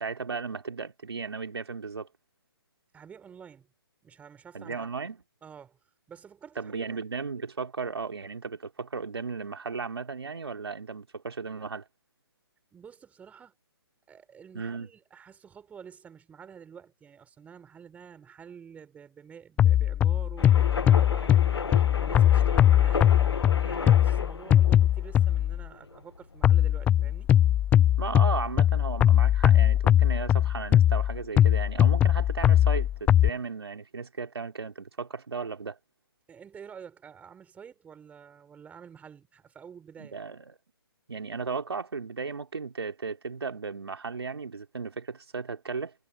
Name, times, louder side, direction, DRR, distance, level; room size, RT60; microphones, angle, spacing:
voice 1, 0.0-2.1 4.5-5.2 6.6-11.9 14.5-14.9 28.0-35.8 40.0-40.6 41.1-45.9, right 5 dB, 80° right, 3.8 m, -35 dB
voice 2, 2.9-3.7 4.0-4.9 5.4-5.8 6.1-6.7 12.7-13.5 14.1-27.3 36.3-40.2, right 7 dB, 10° right, 6.4 m, -49 dB
sound 1, 19.6-25.6 26.4-33.3, left 11 dB, 10° left, 0.5 m, -21 dB
sound 2, 20.4-33.4, left 4 dB, 90° left, 1.9 m, -37 dB
hypercardioid pair, 145°, 13 cm